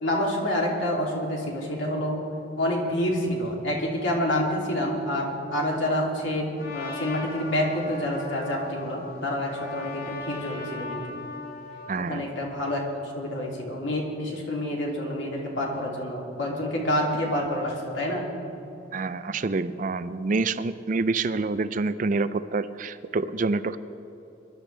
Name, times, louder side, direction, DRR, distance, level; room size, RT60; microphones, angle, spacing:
voice 1, 0.0-2.2 2.6-11.0 11.9-12.8 13.2-18.3, left 1 dB, 75° left, -2 dB, 2.9 m, -28 dB
Trumpet, 6.6-12.0, left 3 dB, 50° left, 2.3 m, -39 dB
voice 2, 11.9-12.3 18.9-23.8, right 3 dB, 45° right, 13 dB, 0.4 m, -27 dB
23.0 x 12.0 x 3.4 m, 2.9 s
head